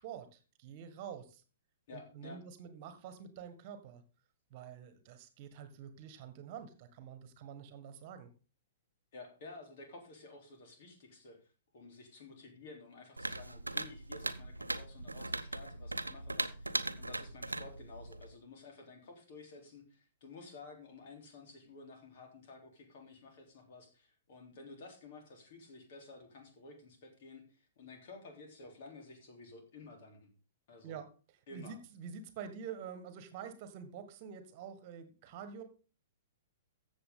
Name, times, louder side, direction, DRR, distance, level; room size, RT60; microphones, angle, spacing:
voice 1, 0.0-1.4 1.9-4.0 4.5-8.3 30.8-31.1 31.5-35.6, right 7 dB, 40° right, 10 dB, 1.6 m, -47 dB
voice 2, 1.9-2.4 9.1-11.4 11.7-30.3 30.7-31.0 31.5-31.8, left 3 dB, 50° left, 3 dB, 3.5 m, -53 dB
sound 1, 13.2-18.3, right 2 dB, 80° right, 0.8 m, -39 dB
14.5 x 7.2 x 3.8 m, 0.34 s
figure-of-eight pair, 110°, 0 cm